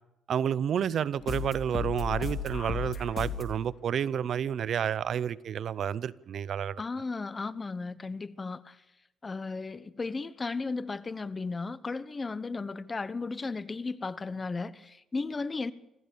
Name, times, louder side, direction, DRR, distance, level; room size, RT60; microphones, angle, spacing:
voice 1, 0.3-6.8, right 8 dB, 65° right, 0.6 m, -30 dB
sound 1, 1.2-3.6, left 5 dB, 50° left, 3.7 m, -34 dB
voice 2, 6.8-8.8 9.2-15.7, left 3 dB, 30° left, 0.9 m, -35 dB
26.5 x 14.5 x 6.9 m
cardioid pair, 90°, 0 cm